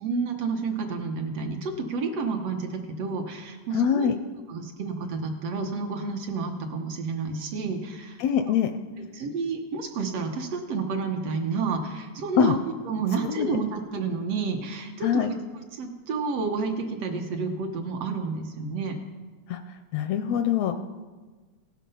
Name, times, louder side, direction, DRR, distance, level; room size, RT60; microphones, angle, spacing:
voice 1, 0.0-4.1 4.5-8.2 8.5-8.6 9.1-12.6 12.9-15.4 15.7-19.0, right 4 dB, 65° right, 3 dB, 1.9 m, -30 dB
voice 2, 3.7-4.2 8.2-8.7 12.4-12.5 13.3-13.5 15.0-15.3 19.5-19.6 19.9-20.8, left 8 dB, 80° left, 8 dB, 1.5 m, -23 dB
17.0 x 7.5 x 5.5 m, 1.4 s
omnidirectional pair, 3.3 m